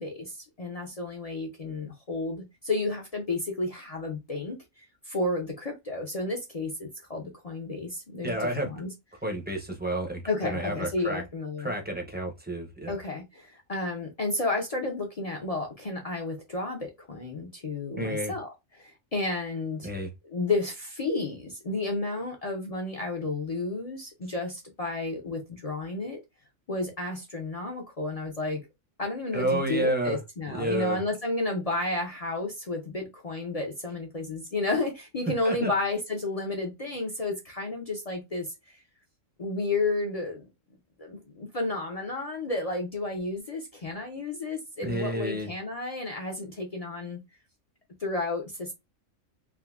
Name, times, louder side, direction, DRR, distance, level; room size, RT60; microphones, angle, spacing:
voice 1, 0.0-4.6 5.1-8.9 10.3-11.7 12.9-18.5 18.8-19.9 20.3-26.2 26.7-28.6 29.0-38.8 39.4-40.4 41.0-47.2 48.0-48.7, left 2 dB, 50° left, 0.4 m, -32 dB
voice 2, 8.2-8.7 9.2-11.2 11.6-12.9 18.0-18.3 19.8-20.1 29.3-30.2 30.5-31.0 35.4-35.7 44.8-45.5, right 1 dB, 15° right, 0.4 m, -30 dB
3.6 x 2.5 x 2.3 m
omnidirectional pair, 1.5 m